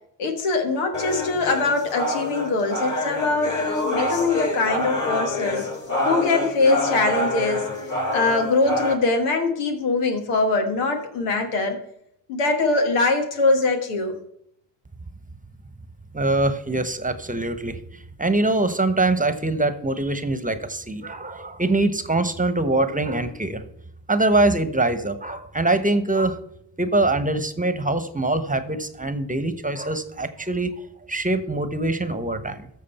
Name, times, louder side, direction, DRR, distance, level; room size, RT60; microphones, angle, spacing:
voice 1, 0.2-5.7 6.0-7.7 8.1-11.8 12.3-14.2, left 3 dB, 85° left, 5 dB, 1.5 m, -22 dB
sound 1, 0.9-8.9, left 1 dB, 35° left, 4.3 m, -26 dB
voice 2, 16.1-23.6 24.1-26.4 26.8-32.7, right 2 dB, 15° right, 11 dB, 1.1 m, -23 dB
14.0 x 6.4 x 4.3 m, 0.73 s
hypercardioid pair, 45°, 50 cm